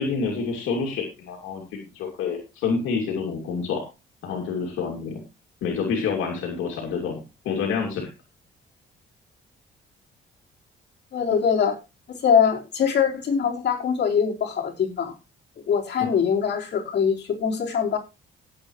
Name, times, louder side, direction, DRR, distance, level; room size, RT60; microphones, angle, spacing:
voice 1, 0.0-3.8 4.2-5.2 5.6-8.1 16.0-16.1, left 5 dB, 85° left, 1 dB, 2.7 m, -28 dB
voice 2, 11.1-11.8 12.1-15.1 15.7-18.0, left 7 dB, 60° left, -3 dB, 4.5 m, -23 dB
17.5 x 7.9 x 3.2 m, 0.28 s
cardioid pair, 90°, 20 cm